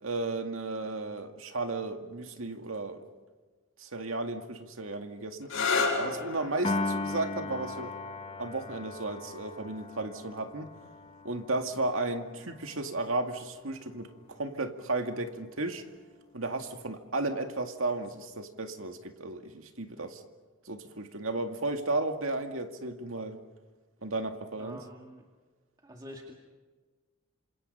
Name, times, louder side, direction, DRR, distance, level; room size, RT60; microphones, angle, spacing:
voice 1, 0.0-3.0 3.8-5.5 6.0-7.9 8.4-10.7 11.2-15.8 16.3-20.2 20.7-23.4 24.0-24.8, right 2 dB, 75° right, 5 dB, 2.2 m, -34 dB
sound 1, 5.4-12.9 13.9-14.4 17.9-18.2, left 4 dB, 80° left, 7.7 m, -36 dB
Piano, 6.6-13.0, left 3 dB, 30° left, 0.9 m, -38 dB
voice 2, 24.6-25.3 25.8-26.3, equal, 20° right, 0 dB, 2.2 m, -46 dB
28.0 x 27.0 x 5.6 m, 1.4 s
head